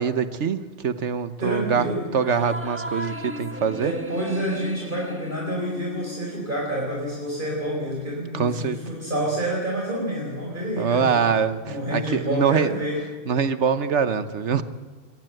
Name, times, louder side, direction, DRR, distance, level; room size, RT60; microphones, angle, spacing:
voice 1, 0.0-3.9 8.3-8.8 10.8-12.7 13.3-14.6, right 6 dB, 85° right, 12 dB, 1.4 m, -24 dB
voice 2, 1.4-2.0 3.8-11.2 11.7-13.0, right 1 dB, 45° right, -3 dB, 4.7 m, -28 dB
sound 1, 2.1-6.9, equal, 10° right, 1.5 m, -37 dB
23.0 x 18.5 x 7.9 m, 1.4 s
omnidirectional pair, 1.2 m